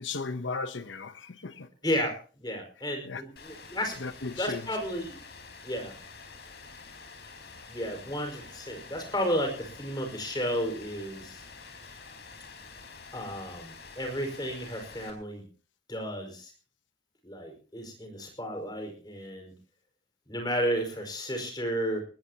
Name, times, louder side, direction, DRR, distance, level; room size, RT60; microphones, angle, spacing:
voice 1, 0.0-1.7 3.1-3.2 4.0-4.6, left 4 dB, 85° left, 0.9 m, -35 dB
voice 2, 1.8-4.0 4.4-5.2 5.6-5.9 7.7-11.4 13.1-15.5 15.9-16.5 17.2-19.5 20.3-22.0, equal, 20° left, 5.2 m, -33 dB
Rain, 3.4-15.1, left 4 dB, 60° left, 4.6 m, -48 dB
21.0 x 19.5 x 2.9 m
head